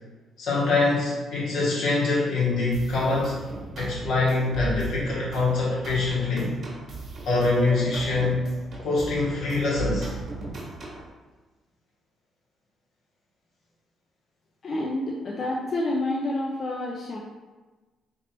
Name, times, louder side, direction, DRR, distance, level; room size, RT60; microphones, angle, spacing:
voice 1, 0.4-3.4 3.8-6.5 7.2-8.5 8.8-10.1, left 3 dB, 80° left, -5 dB, 1.3 m, -24 dB
sound 1, 2.7-11.1, right 4 dB, 50° right, 1.2 m, -37 dB
voice 2, 14.6-17.2, left 1 dB, 50° left, -3 dB, 0.5 m, -28 dB
3.0 x 3.0 x 4.0 m, 1.2 s
cardioid pair, 90°, 0 cm